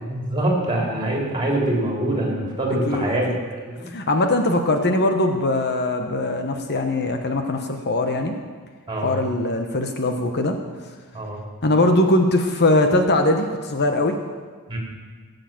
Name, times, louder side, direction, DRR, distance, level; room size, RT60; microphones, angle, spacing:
voice 1, 0.1-3.9 8.9-9.2 11.1-11.4 14.7-14.8, right 1 dB, 20° right, -1 dB, 3.6 m, -24 dB
voice 2, 2.9-3.4 3.9-8.3 9.0-10.5 11.6-14.2, left 2 dB, 50° left, 5 dB, 1.1 m, -21 dB
18.0 x 8.0 x 7.6 m, 1.5 s
head